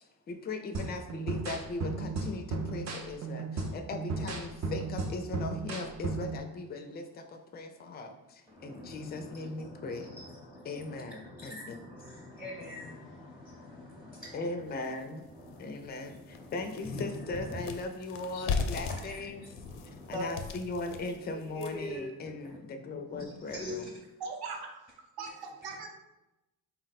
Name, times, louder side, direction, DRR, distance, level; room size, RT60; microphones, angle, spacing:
voice 1, 0.0-10.1 10.6-11.7 14.3-19.5 20.1-23.8, left 3 dB, 25° left, 6 dB, 0.3 m, -39 dB
sound 1, 0.7-6.4, right 3 dB, 45° right, 0.5 m, -35 dB
voice 2, 8.5-14.7 15.3-17.6 18.2-20.3 21.2-23.9, left 1 dB, 5° right, -3 dB, 0.7 m, -44 dB
sound 2, 14.8-14.9 15.4-15.5 15.9-22.0, left 5 dB, 85° left, 0.5 m, -37 dB
voice 3, 24.2-24.7 25.2-25.9, right 5 dB, 75° right, 3 dB, 0.7 m, -39 dB
4.0 x 2.1 x 4.0 m, 0.99 s
cardioid pair, 115°, 38 cm